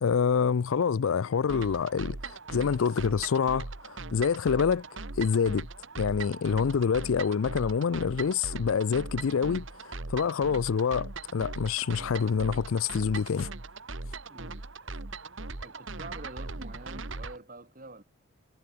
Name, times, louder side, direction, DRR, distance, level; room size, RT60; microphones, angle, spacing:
voice 1, 0.0-4.9 5.2-5.7 6.0-13.5, left 6 dB, 75° left, 0.4 m, -27 dB
sound 1, 1.5-17.4, right 3 dB, 65° right, 1.7 m, -40 dB
voice 2, 14.3-14.7 15.6-18.0, right 2 dB, 40° right, 2.2 m, -46 dB
head